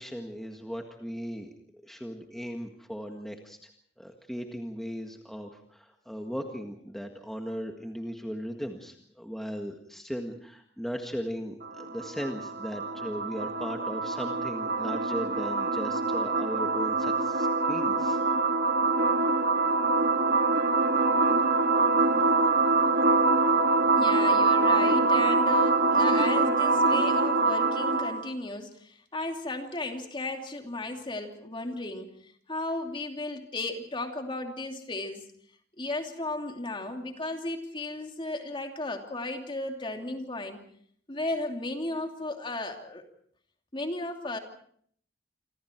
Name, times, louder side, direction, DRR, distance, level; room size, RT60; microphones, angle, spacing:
voice 1, 0.0-1.5 1.8-3.7 4.0-18.2, equal, ahead, 3 dB, 1.7 m, -37 dB
sound 1, 11.6-28.3, right 3 dB, 55° right, 1.6 m, -24 dB
voice 2, 23.9-35.2 35.8-40.6 41.1-43.0 43.7-44.4, left 2 dB, 25° left, 4 dB, 2.9 m, -35 dB
27.5 x 26.5 x 4.6 m, 0.62 s
head